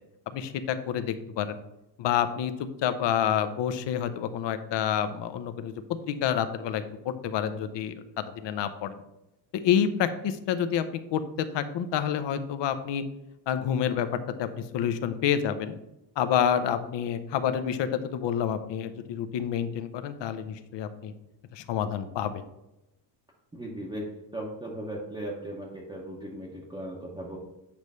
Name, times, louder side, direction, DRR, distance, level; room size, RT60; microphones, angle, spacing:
voice 1, 0.3-1.6 2.0-2.5 2.8-8.9 9.5-10.8 11.1-13.0 13.5-14.1 14.4-15.7 16.2-21.1 21.5-22.4, left 9 dB, 70° left, 10 dB, 0.7 m, -28 dB
voice 2, 23.5-24.1 24.3-27.4, right 1 dB, 10° right, -4 dB, 0.8 m, -37 dB
8.7 x 3.2 x 5.4 m, 0.91 s
cardioid pair, 180°, 45 cm